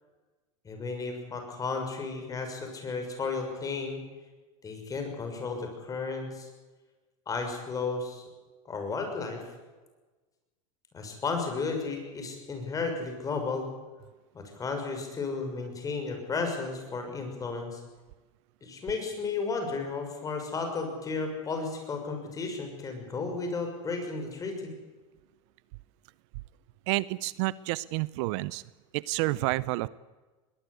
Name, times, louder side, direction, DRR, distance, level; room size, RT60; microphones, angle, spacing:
voice 1, 0.6-4.0 4.6-6.5 7.3-8.2 8.7-9.4 10.9-13.7 14.3-17.8 18.6-24.7, left 4 dB, 20° left, 4 dB, 6.4 m, -33 dB
voice 2, 26.9-28.6 28.9-29.9, right 20 dB, 60° right, 19 dB, 0.7 m, -29 dB
22.0 x 19.0 x 8.3 m, 1.2 s
supercardioid pair, 135°, 17 cm